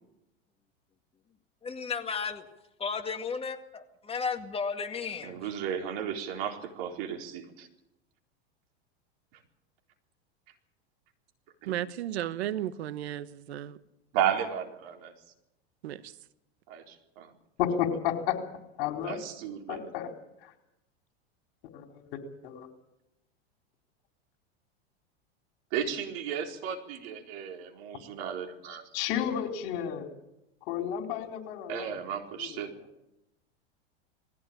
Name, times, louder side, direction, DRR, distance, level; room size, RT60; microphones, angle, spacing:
voice 1, 1.6-2.5 2.8-5.4, left 5 dB, 20° left, 2.1 m, -34 dB
voice 2, 5.2-7.7 11.6-11.7 14.1-15.1 16.7-17.3 19.0-19.9 25.7-28.8 31.7-32.7, right 8 dB, 55° right, 4.2 m, -34 dB
voice 3, 11.7-13.8 15.8-16.1, right 12 dB, 80° right, 1.1 m, -34 dB
voice 4, 17.6-18.4 18.8-19.2 19.7-20.1 20.4-20.5 21.7-21.8 22.4-22.7 28.9-30.1 30.7-32.0 32.4-32.6, left 9 dB, 60° left, 4.1 m, -31 dB
20.5 x 16.0 x 8.8 m
hypercardioid pair, 115°, 32 cm